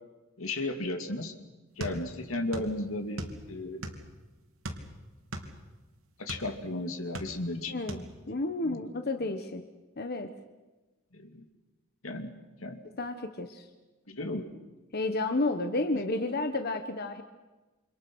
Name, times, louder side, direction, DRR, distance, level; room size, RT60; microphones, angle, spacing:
voice 1, 0.4-1.3 1.8-3.8 6.2-7.8 8.6-8.8 11.1-11.4 12.0-12.3 12.6-12.8 14.1-14.5, left 2 dB, 80° left, 6 dB, 2.6 m, -34 dB
sound 1, 1.8-2.7 3.0-4.1 4.6-6.5 6.9-7.6 7.9-8.1, right 1 dB, 85° right, 3.2 m, -38 dB
voice 2, 7.7-9.6 10.0-10.3 13.0-13.6 14.9-17.2, left 2 dB, 50° left, 7 dB, 1.3 m, -31 dB
28.5 x 26.0 x 6.3 m, 1.2 s
head